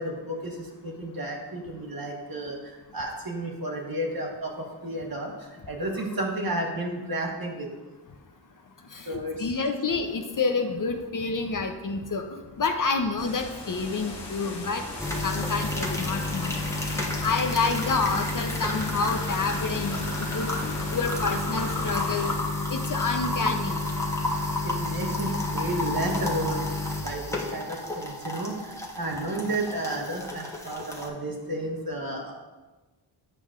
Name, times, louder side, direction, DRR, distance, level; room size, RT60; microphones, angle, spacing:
voice 1, 0.0-2.6 2.9-7.7 9.0-9.5 24.6-26.7 27.0-32.3, right 1 dB, 50° right, 0 dB, 1.5 m, -32 dB
voice 2, 8.9-14.8 15.2-16.5 16.9-22.3 22.7-23.8, left 4 dB, 45° left, 5 dB, 0.7 m, -28 dB
sound 1, 13.2-22.4, left 2 dB, 60° left, 1.5 m, -38 dB
sound 2, 15.0-31.1, left 2 dB, 5° left, 1.1 m, -30 dB
8.2 x 5.3 x 2.5 m, 1.2 s
cardioid pair, 40°, 46 cm